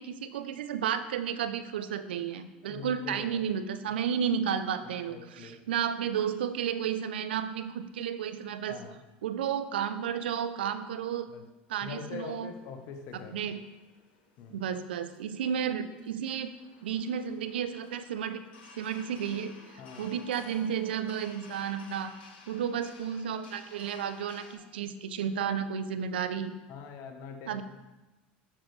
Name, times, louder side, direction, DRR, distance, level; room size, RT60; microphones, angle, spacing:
voice 1, 0.0-8.8 9.2-11.3 11.7-12.5 13.3-13.6 14.5-16.5 16.8-18.4 18.8-19.5 20.0-22.1 22.5-24.5 24.7-26.5 27.5-27.6, right 8 dB, 85° right, 11 dB, 0.4 m, -32 dB
voice 2, 2.6-3.4 4.8-5.6 8.7-9.0 11.3-11.4 11.8-13.4 14.4-14.6 19.8-20.1 26.7-27.6, left 6 dB, 60° left, 6 dB, 1.0 m, -43 dB
sound 1, 12.2-24.5, left 4 dB, 80° left, 1.2 m, -54 dB
7.3 x 6.4 x 3.2 m, 1.1 s
hypercardioid pair, 90°, 5 cm